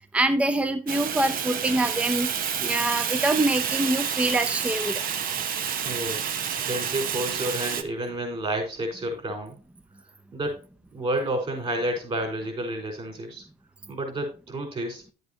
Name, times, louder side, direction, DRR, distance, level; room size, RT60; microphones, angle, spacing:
voice 1, 0.1-2.3 2.6-4.9, right 2 dB, 5° right, 0.7 m, -25 dB
Fire, 0.9-7.8, right 8 dB, 55° right, 1.0 m, -29 dB
voice 2, 5.8-6.3 6.6-9.5 10.3-10.6 10.9-13.4 13.9-15.0, right 1 dB, 35° right, 4.6 m, -30 dB
10.5 x 8.0 x 2.8 m
cardioid pair, 110°, 17 cm